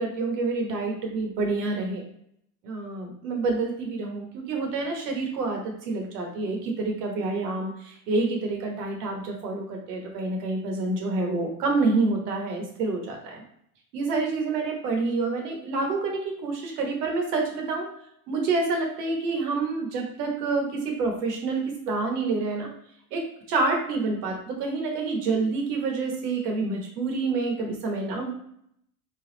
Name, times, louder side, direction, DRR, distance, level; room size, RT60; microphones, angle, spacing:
voice 1, 0.0-2.0 2.6-13.4 13.9-17.9 18.3-22.7 23.1-23.2 23.5-28.3, right 3 dB, 85° right, 1 dB, 1.4 m, -28 dB
3.9 x 2.4 x 3.9 m, 0.71 s
supercardioid pair, 115°, 46 cm